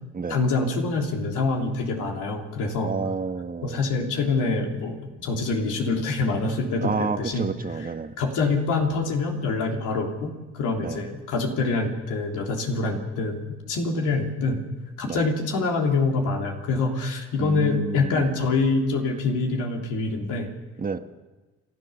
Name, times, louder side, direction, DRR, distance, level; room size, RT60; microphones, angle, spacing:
voice 1, 0.3-2.9 3.6-7.5 7.8-7.9 8.2-14.6 15.0-20.5, left 3 dB, 90° left, 1 dB, 3.3 m, -25 dB
voice 2, 2.8-3.8 6.8-8.1 10.8-11.0 15.1-15.2 17.4-18.3 20.8-21.0, right 4 dB, 30° right, 8 dB, 1.3 m, -30 dB
30.0 x 12.5 x 6.9 m, 1.2 s
cardioid pair, 90°, 30 cm